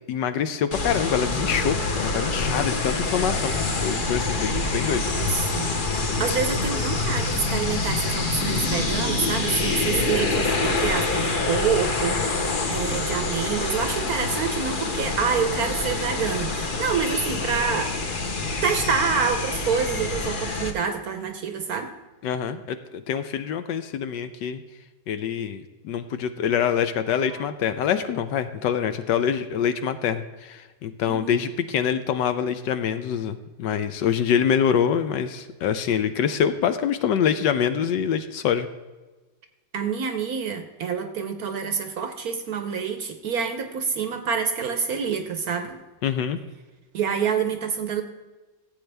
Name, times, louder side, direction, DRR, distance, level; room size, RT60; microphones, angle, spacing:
voice 1, 0.1-3.5 3.8-5.1 6.2-6.4 22.2-24.6 25.1-38.7 46.0-46.4, left 8 dB, 70° left, 10 dB, 1.2 m, -25 dB
sound 1, 0.7-20.7, left 3 dB, 40° left, 0.8 m, -26 dB
voice 2, 4.8-17.9 18.6-21.9 27.3-27.4 31.0-31.4 39.7-45.8 46.9-48.0, right 6 dB, 60° right, 7 dB, 1.1 m, -27 dB
15.0 x 8.1 x 3.4 m, 1.2 s
omnidirectional pair, 2.1 m